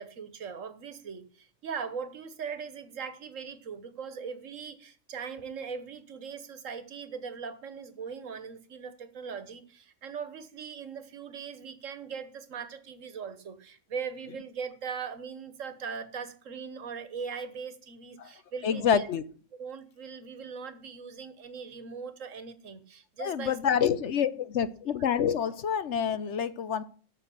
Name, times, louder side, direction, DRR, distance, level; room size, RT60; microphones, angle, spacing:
voice 1, 0.0-19.1 19.6-23.8, right 6 dB, 85° right, 13 dB, 1.6 m, -40 dB
voice 2, 18.6-19.2 23.2-26.8, left 8 dB, 70° left, 15 dB, 1.1 m, -27 dB
13.5 x 6.0 x 7.6 m, 0.42 s
omnidirectional pair, 1.3 m